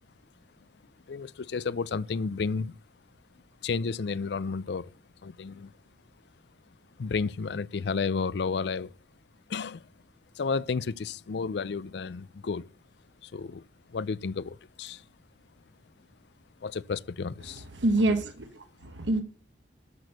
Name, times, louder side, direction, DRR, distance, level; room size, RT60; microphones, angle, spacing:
voice 1, 1.1-2.8 3.6-4.9 5.2-5.7 7.0-8.9 9.5-9.8 10.4-12.6 13.2-15.0 16.6-17.7, left 5 dB, 70° left, 0.4 m, -32 dB
voice 2, 17.8-19.2, right 2 dB, 85° right, 1.2 m, -26 dB
12.5 x 6.2 x 6.6 m
head